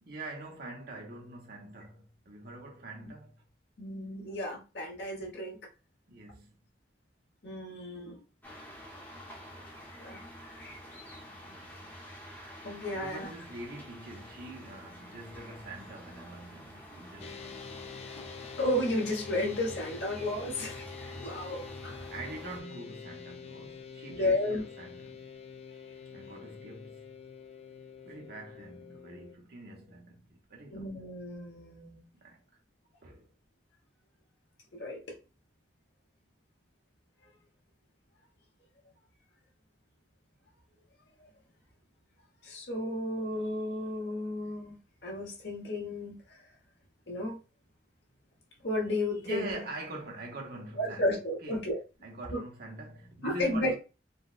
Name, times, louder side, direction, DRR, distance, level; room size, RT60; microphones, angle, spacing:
voice 1, 0.0-3.3 6.1-6.6 12.9-17.6 22.1-25.2 26.1-27.1 28.0-31.0 32.2-32.4 33.0-33.3 49.2-51.1 51.4-51.7 52.0-53.8, right 2 dB, 60° right, 0.9 m, -44 dB
voice 2, 3.8-5.6 7.4-8.2 10.0-10.2 12.6-13.3 18.1-18.3 18.6-20.8 21.2-22.1 24.1-24.6 30.7-32.0 34.8-35.0 42.4-44.8 45.0-46.4 47.1-47.4 48.6-49.6 50.8-51.8 52.3-52.4 53.2-53.8, left 1 dB, 75° left, 1.2 m, -33 dB
soft rain decreasing, 8.4-22.6, equal, 10° left, 0.8 m, -48 dB
sound 1, 17.2-29.3, left 6 dB, 35° left, 0.4 m, -46 dB
3.9 x 2.1 x 2.4 m
head